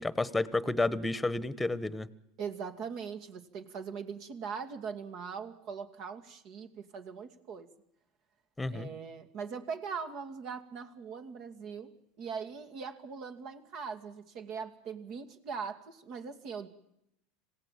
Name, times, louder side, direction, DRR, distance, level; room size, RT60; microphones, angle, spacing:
voice 1, 0.0-2.1 8.6-8.9, left 2 dB, 10° left, 18 dB, 1.3 m, -31 dB
voice 2, 2.4-7.7 8.7-11.9 12.2-16.7, right 6 dB, 55° right, 7 dB, 2.4 m, -41 dB
26.5 x 17.0 x 7.5 m, 0.80 s
hypercardioid pair, 85°, 0 cm